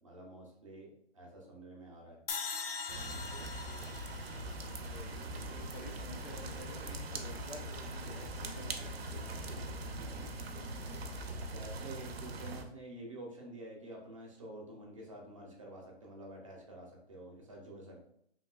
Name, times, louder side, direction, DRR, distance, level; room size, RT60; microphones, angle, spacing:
voice 1, 0.0-2.2 10.0-10.3 11.3-18.1, right 1 dB, 30° right, -2 dB, 0.6 m, -49 dB
sound 1, 2.3-5.5, left 5 dB, 65° left, 0.5 m, -42 dB
sound 2, 2.9-12.6, right 2 dB, 70° right, 0.6 m, -42 dB
sound 3, 3.3-12.0, left 2 dB, 40° left, 1.1 m, -50 dB
voice 2, 4.8-9.1, left 2 dB, 80° left, 1 dB, 1.0 m, -50 dB
2.9 x 2.8 x 2.3 m, 0.69 s
hypercardioid pair, 175°, 31 cm